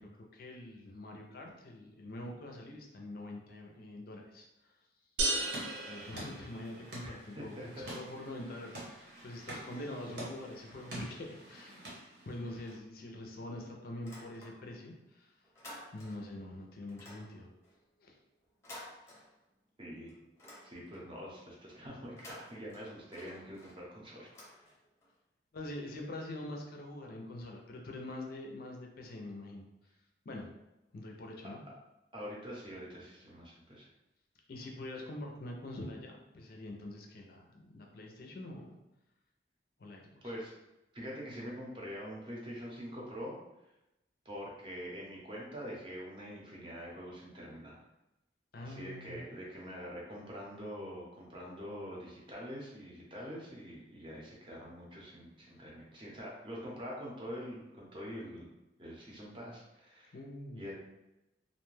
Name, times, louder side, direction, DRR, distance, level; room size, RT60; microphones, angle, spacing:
voice 1, 0.0-4.7 5.7-11.8 12.3-15.4 15.9-17.5 18.0-18.2 25.5-29.7 30.3-30.5 30.9-31.6 34.5-38.8 39.8-40.3 48.5-49.2 55.5-55.6 60.1-60.6, left 1 dB, 55° left, 1 dB, 0.4 m, -45 dB
sound 1, 5.2-7.0, right 2 dB, 80° right, 0.5 m, -35 dB
sound 2, 5.4-12.7, right 1 dB, 60° right, 0.9 m, -48 dB
voice 2, 7.0-8.0 19.8-20.1 20.6-24.7 32.1-33.9 40.2-40.5 40.9-43.4 44.2-47.7 48.6-58.5 58.8-60.2 60.5-60.7, equal, 30° right, -4 dB, 0.7 m, -45 dB
sound 3, 14.0-14.9 15.2-16.4 16.9-19.7 20.1-21.2 22.0-25.1, left 1 dB, 15° left, 0.6 m, -53 dB
2.5 x 2.1 x 3.1 m, 0.92 s
head